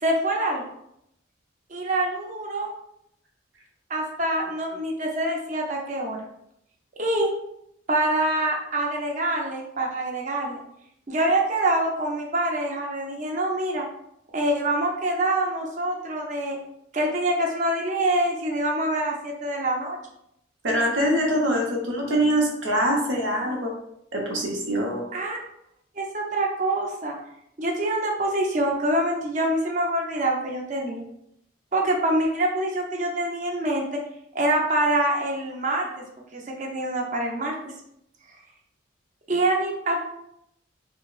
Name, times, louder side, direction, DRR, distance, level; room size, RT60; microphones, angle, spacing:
voice 1, 0.0-0.7 1.7-2.7 3.9-6.3 7.0-7.3 7.9-10.6 11.1-13.8 14.3-16.6 16.9-20.0 25.1-25.4 26.0-27.1 27.6-31.0 31.7-34.0 34.3-36.0 36.3-37.7 39.3-40.0, right 1 dB, 40° right, 0 dB, 0.6 m, -25 dB
voice 2, 20.6-23.7 24.1-25.1, equal, 75° right, 0 dB, 0.8 m, -24 dB
4.7 x 2.1 x 2.3 m, 0.78 s
head